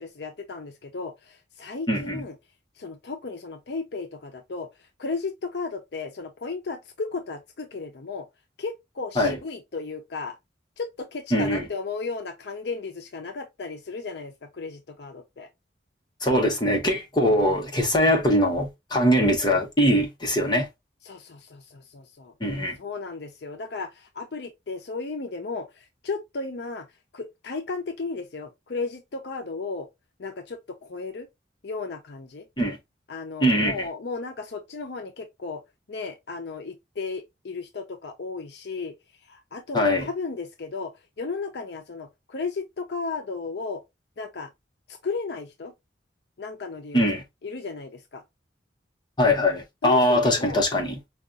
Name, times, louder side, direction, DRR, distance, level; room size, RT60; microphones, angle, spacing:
voice 1, 0.0-2.4 2.8-4.7 5.0-8.3 8.6-10.4 10.8-15.5 21.0-22.3 22.8-26.9 27.1-29.9 30.2-31.3 31.6-32.4 33.1-35.6 35.9-38.9 39.3-43.8 44.2-44.5 44.9-45.7 46.4-47.2 47.4-48.2 49.8-50.6, left 4 dB, 65° left, 0.5 m, -34 dB
voice 2, 1.9-2.2 9.2-9.4 11.3-11.6 16.2-20.7 22.4-22.8 32.6-32.8 33.4-33.8 39.7-40.1 46.9-47.2 49.2-51.0, equal, 25° left, 0.8 m, -22 dB
4.9 x 2.3 x 2.4 m
head